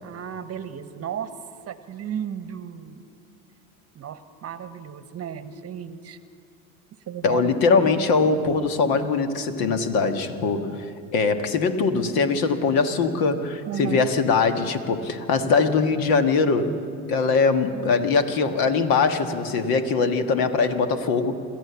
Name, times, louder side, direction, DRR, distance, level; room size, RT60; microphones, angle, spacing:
voice 1, 0.0-1.3 1.7-3.0 3.9-6.2 7.1-7.6 13.7-14.1, right 9 dB, 35° right, 12 dB, 1.1 m, -34 dB
voice 2, 7.2-16.8 17.1-21.4, left 4 dB, 55° left, 8 dB, 1.7 m, -22 dB
26.5 x 14.0 x 7.1 m, 2.4 s
hypercardioid pair, 75°, 42 cm